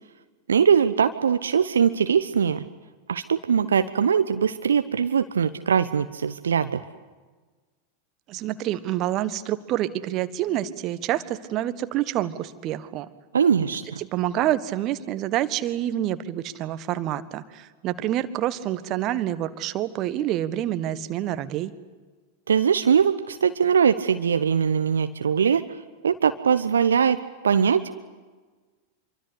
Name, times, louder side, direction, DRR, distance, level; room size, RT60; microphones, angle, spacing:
voice 1, 0.5-2.6 3.1-6.8 13.3-14.0 22.5-25.6 26.0-27.2 27.4-28.0, right 7 dB, 70° right, 10 dB, 1.0 m, -21 dB
voice 2, 8.3-13.1 14.0-21.7, right 12 dB, 35° right, 12 dB, 1.5 m, -27 dB
26.5 x 24.0 x 8.3 m, 1.3 s
figure-of-eight pair, 90°, 0 cm